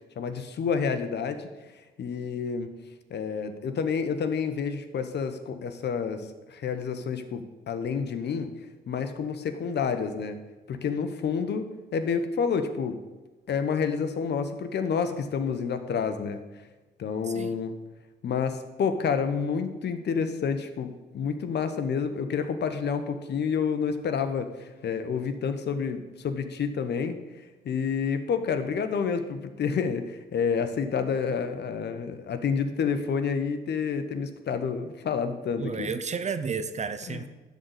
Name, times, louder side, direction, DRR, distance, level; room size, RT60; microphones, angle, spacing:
voice 1, 0.2-1.5 2.0-2.7 3.1-8.5 8.9-10.4 10.7-13.0 13.5-16.4 17.0-17.7 18.2-27.2 27.6-35.9 37.1-37.3, left 6 dB, 60° left, 9 dB, 1.1 m, -29 dB
voice 2, 35.6-37.3, right 5 dB, 35° right, 11 dB, 0.7 m, -31 dB
12.0 x 4.1 x 8.0 m, 1.2 s
cardioid pair, 90°, 20 cm